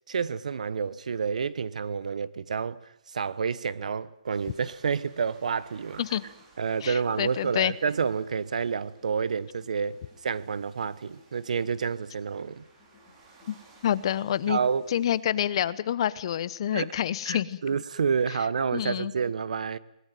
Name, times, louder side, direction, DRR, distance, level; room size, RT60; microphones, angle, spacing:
voice 1, 0.1-6.0 6.6-12.6 14.5-14.8 16.7-16.9 17.3-19.8, right 6 dB, 70° right, 1.2 m, -29 dB
sound 1, 4.3-15.2, right 3 dB, 25° right, 5.4 m, -59 dB
sound 2, 5.4-15.1, left 5 dB, 10° left, 7.1 m, -60 dB
voice 2, 6.8-7.7 13.5-13.6 13.8-14.6 14.9-17.6 18.7-19.1, left 10 dB, 45° left, 0.9 m, -27 dB
21.5 x 19.5 x 9.3 m
hypercardioid pair, 155°, 4 cm